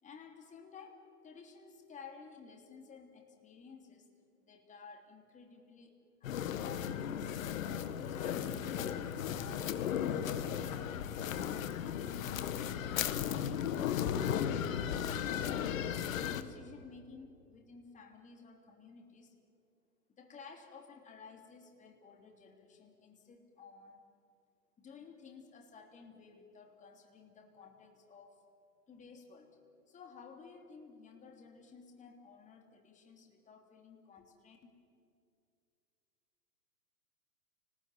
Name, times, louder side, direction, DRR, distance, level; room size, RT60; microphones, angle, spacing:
voice 1, 0.0-4.1 4.4-7.3 7.6-10.4 10.7-14.2 14.8-19.3 20.1-24.0 24.8-28.4 28.9-29.5 29.9-34.7, left 5 dB, 15° left, 2 dB, 3.3 m, -55 dB
sound 1, 6.2-16.4, left 9 dB, 60° left, 1.7 m, -35 dB
29.5 x 20.0 x 9.3 m, 2.5 s
hypercardioid pair, 130°, 47 cm